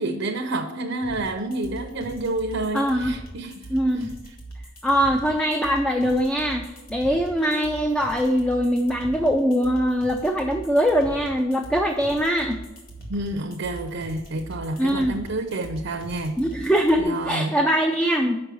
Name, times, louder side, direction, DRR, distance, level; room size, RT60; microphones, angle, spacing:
voice 1, 0.0-3.7 4.0-4.1 13.1-16.4 17.0-17.5, right 2 dB, 70° right, 5 dB, 0.6 m, -29 dB
sound 1, 1.0-17.0, right 1 dB, 50° left, 2.1 m, -40 dB
voice 2, 2.7-3.1 3.7-4.1 4.8-12.6 14.8-15.2 16.4-18.4, equal, 5° left, 4 dB, 0.4 m, -22 dB
6.8 x 5.3 x 6.1 m, 1.1 s
head